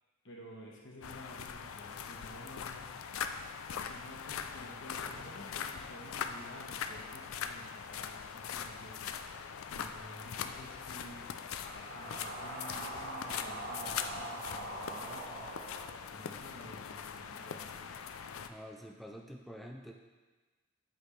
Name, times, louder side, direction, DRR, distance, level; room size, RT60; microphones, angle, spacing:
voice 1, 0.2-2.9 3.7-15.6 16.1-17.9, equal, 55° left, -2 dB, 1.3 m, -52 dB
sound 1, 1.0-18.5, left 7 dB, 75° left, 0.4 m, -42 dB
sound 2, 10.5-16.6, right 1 dB, 45° right, 1.1 m, -44 dB
voice 2, 18.5-19.9, equal, ahead, 1 dB, 0.4 m, -47 dB
8.1 x 6.1 x 3.3 m, 1.3 s
head